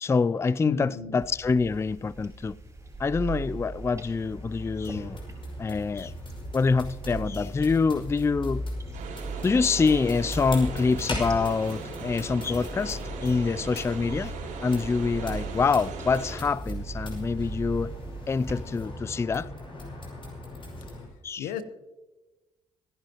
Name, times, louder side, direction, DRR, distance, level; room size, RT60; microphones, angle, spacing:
voice 1, 0.0-2.6 3.0-5.2 5.6-6.1 6.5-8.6 9.4-14.3 14.6-17.9 18.3-19.5 21.2-21.5, left 4 dB, 20° left, 0.3 m, -26 dB
voice 2, 0.6-1.2 21.4-21.6, left 8 dB, 85° left, 0.9 m, -33 dB
slurping tea, 1.2-18.5, right 2 dB, 20° right, 4.7 m, -39 dB
sound 1, 2.6-21.1, left 1 dB, 40° left, 5.6 m, -41 dB
sound 2, 8.9-16.4, right 4 dB, 85° right, 5.0 m, -40 dB
26.0 x 11.0 x 3.0 m
supercardioid pair, 60°, 14 cm